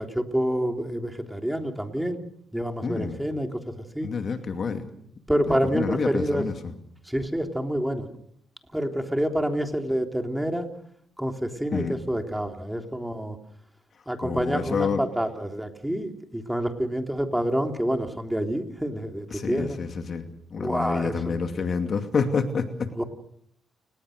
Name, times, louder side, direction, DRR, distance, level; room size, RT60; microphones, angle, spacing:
voice 1, 0.0-2.2 2.5-4.1 5.3-6.5 7.1-8.1 8.7-10.7 11.2-13.4 14.1-19.8 20.6-21.4 22.9-23.0, equal, 5° right, 5 dB, 3.4 m, -28 dB
voice 2, 2.8-3.2 4.0-4.9 5.5-6.7 11.7-12.0 14.2-15.0 19.3-20.2 20.5-22.9, left 5 dB, 50° left, 7 dB, 2.5 m, -28 dB
29.0 x 19.5 x 6.6 m, 0.67 s
cardioid pair, 90°, 0 cm